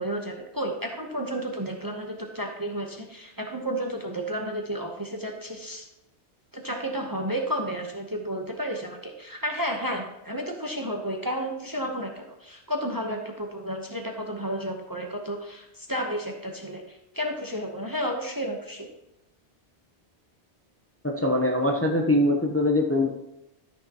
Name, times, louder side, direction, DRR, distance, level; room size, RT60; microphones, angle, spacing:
voice 1, 0.0-5.9 6.5-18.9, equal, 20° right, 2 dB, 0.9 m, -32 dB
voice 2, 21.0-23.1, left 1 dB, 15° left, 1 dB, 0.7 m, -22 dB
13.0 x 6.4 x 2.9 m, 0.87 s
omnidirectional pair, 1.1 m